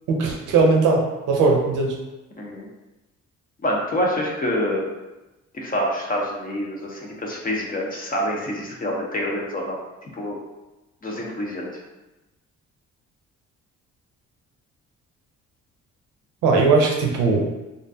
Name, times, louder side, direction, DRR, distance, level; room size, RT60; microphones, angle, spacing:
voice 1, 0.1-2.0 16.4-17.5, right 3 dB, 85° right, 0 dB, 0.6 m, -19 dB
voice 2, 3.6-4.9 5.5-10.4 11.0-11.8, equal, 30° left, -2 dB, 0.6 m, -27 dB
2.4 x 2.2 x 2.5 m, 1.0 s
cardioid pair, 90°, 30 cm